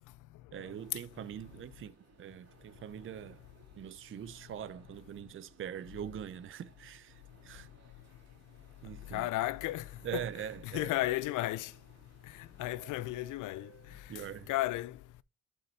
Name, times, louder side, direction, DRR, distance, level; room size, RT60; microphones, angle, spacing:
voice 1, 0.5-3.4 3.8-7.7 8.8-9.3 10.0-10.9 14.1-14.5, right 9 dB, 45° right, 0.6 m, -43 dB
sound 1, 0.7-14.5, right 6 dB, 60° right, 2.6 m, -63 dB
voice 2, 9.1-9.9 10.1-10.2 10.7-11.7 12.4-13.7 14.5-15.0, left 16 dB, 85° left, 0.5 m, -33 dB
10.5 x 5.7 x 2.8 m
cardioid pair, 90°, 30 cm